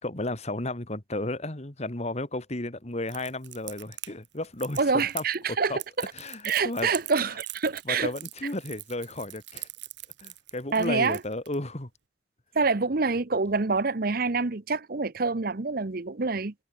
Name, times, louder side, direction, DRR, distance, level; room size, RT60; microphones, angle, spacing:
voice 1, 0.0-5.2 5.7-5.8 6.1-6.9 7.8-9.7 10.2-11.9, left 2 dB, 40° left, 2.4 m, -33 dB
Crackle, 3.1-11.5, right 15 dB, 90° right, 3.5 m, -42 dB
voice 2, 4.8-6.1 6.4-8.1 10.7-11.2 12.5-16.5, right 4 dB, 55° right, 0.9 m, -26 dB
head